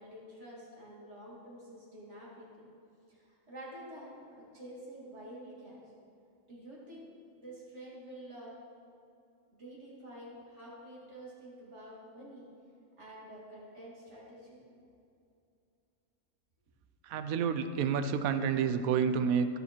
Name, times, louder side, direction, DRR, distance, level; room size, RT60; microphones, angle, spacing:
voice 1, 0.0-2.7 3.1-5.8 6.5-7.1 7.3-8.5 9.6-12.4 13.0-14.6, right 1 dB, 55° right, -5 dB, 2.8 m, -49 dB
voice 2, 17.0-19.5, right 7 dB, 80° right, 10 dB, 1.1 m, -29 dB
15.0 x 7.1 x 4.5 m, 2.6 s
omnidirectional pair, 1.5 m